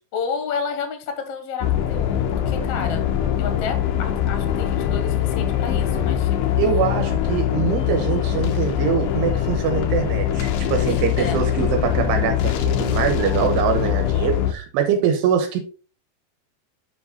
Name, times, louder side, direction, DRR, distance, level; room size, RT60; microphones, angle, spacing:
voice 1, 0.1-3.0 3.4-6.5 10.9-11.4, left 5 dB, 55° left, 5 dB, 1.7 m, -31 dB
sound 1, 1.6-14.5, left 10 dB, 85° left, 2.9 m, -22 dB
voice 2, 6.6-15.6, right 7 dB, 85° right, 5 dB, 2.9 m, -23 dB
7.7 x 4.9 x 4.0 m, 0.37 s
omnidirectional pair, 4.8 m